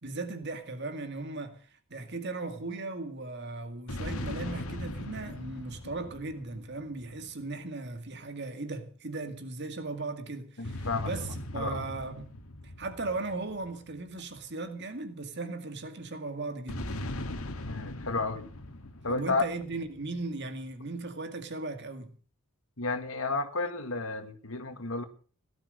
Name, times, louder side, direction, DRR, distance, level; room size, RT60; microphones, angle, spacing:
voice 1, 0.0-12.3 12.6-16.9 19.1-22.2, right 3 dB, 50° right, 2.1 m, -37 dB
sound 1, 3.9-7.5 10.6-14.3 16.7-20.1, left 1 dB, 90° left, 1.8 m, -39 dB
voice 2, 10.6-11.1 11.6-11.8 17.7-18.5 19.0-19.4 22.8-25.0, left 3 dB, 70° left, 1.9 m, -32 dB
17.5 x 12.0 x 6.5 m
head